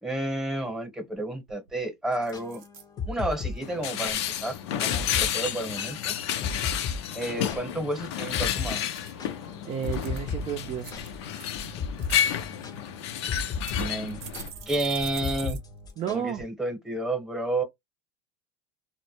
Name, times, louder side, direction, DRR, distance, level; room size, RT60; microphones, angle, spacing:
voice 1, 0.0-2.6 3.1-6.1 7.1-8.8 13.7-14.2 14.7-15.6 16.1-17.6, right 1 dB, 5° right, 0.9 m, -31 dB
sound 1, 1.1-1.2 1.5-1.8 2.3-2.8 3.3-3.7 8.1-9.1 9.6-10.3 10.8-11.5 11.8-12.2 13.0-13.1 13.7-15.6 15.9-16.0 16.4-16.5, right 8 dB, 80° right, 0.6 m, -44 dB
sound 2, 2.1-4.2 4.5-4.6 4.9-5.3 5.6-7.9 8.3-8.7 9.0-16.3, left 4 dB, 30° left, 0.6 m, -35 dB
sound 3, 3.6-14.5, left 10 dB, 80° left, 0.5 m, -31 dB
voice 2, 9.7-11.1 16.0-16.4, right 8 dB, 40° right, 0.5 m, -32 dB
2.1 x 2.0 x 2.9 m
supercardioid pair, 110°, 14 cm